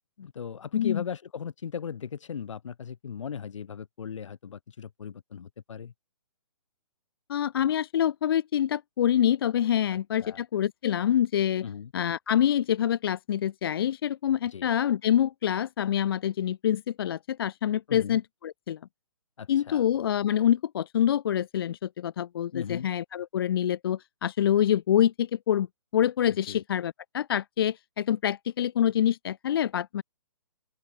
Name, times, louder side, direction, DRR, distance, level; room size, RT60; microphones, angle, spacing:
voice 1, 0.2-5.9 10.2-10.4 11.6-11.9 14.5-14.7 17.9-18.2 19.4-19.8 22.5-22.9 26.5-26.6, left 7 dB, 65° left, 3.1 m, -37 dB
voice 2, 7.3-11.6 11.9-18.8 19.5-25.7 25.9-30.0, left 10 dB, 45° left, 0.5 m, -26 dB
open air
hypercardioid pair, 155°, 17 cm